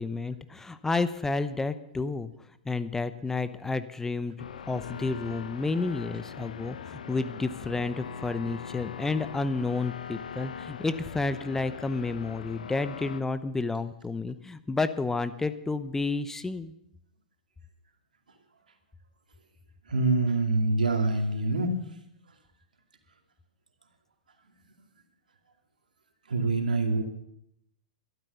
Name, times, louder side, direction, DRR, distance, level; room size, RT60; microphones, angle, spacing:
voice 1, 0.0-2.3 2.7-4.4 4.7-16.7, left 3 dB, 10° left, 12 dB, 0.7 m, -30 dB
sound 1, 4.4-13.2, left 7 dB, 75° left, 1.0 m, -41 dB
voice 2, 19.9-21.8 26.3-27.0, right 2 dB, 85° right, 4 dB, 2.4 m, -25 dB
13.0 x 12.5 x 6.8 m, 0.79 s
hypercardioid pair, 115°, 4 cm